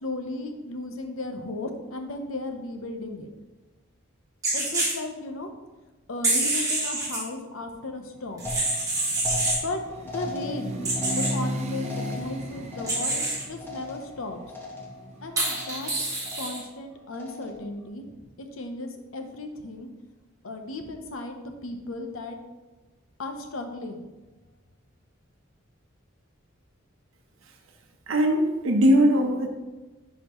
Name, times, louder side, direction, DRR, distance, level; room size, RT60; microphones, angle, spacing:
voice 1, 0.0-3.3 4.5-5.5 6.1-8.4 9.6-14.4 15.2-15.9 16.4-19.9 20.4-22.4 23.2-24.0, left 2 dB, 80° left, 5 dB, 0.8 m, -35 dB
sound 1, 4.4-4.9 6.2-7.2 8.4-9.6 10.8-11.3 12.9-13.4 15.4-16.6, right 2 dB, 15° right, 2.1 m, -26 dB
sound 2, 8.3-16.3, equal, 35° right, 0.7 m, -36 dB
sound 3, 8.5-14.2 14.5-15.1 15.4-15.9 16.3-16.8 17.1-17.7, left 2 dB, 10° left, 1.0 m, -38 dB
voice 2, 28.1-29.5, equal, 85° right, 3 dB, 0.8 m, -20 dB
10.0 x 4.3 x 3.0 m, 1.2 s
head